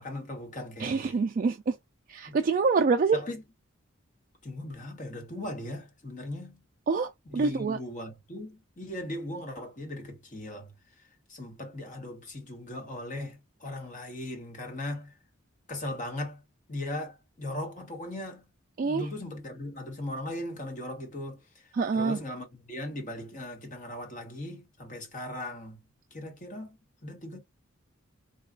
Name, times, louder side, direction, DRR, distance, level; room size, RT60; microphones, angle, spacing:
voice 1, 0.0-1.2 2.2-2.4 3.1-3.4 4.4-6.6 7.3-11.0 11.3-15.1 15.7-16.4 16.7-18.5 18.8-25.8 26.1-27.4, left 1 dB, 40° left, 1.3 m, -38 dB
voice 2, 0.8-1.7 2.1-3.2 6.9-7.8 18.8-19.0 21.7-22.2, right 4 dB, 40° right, 0.3 m, -26 dB
3.9 x 2.3 x 2.3 m
head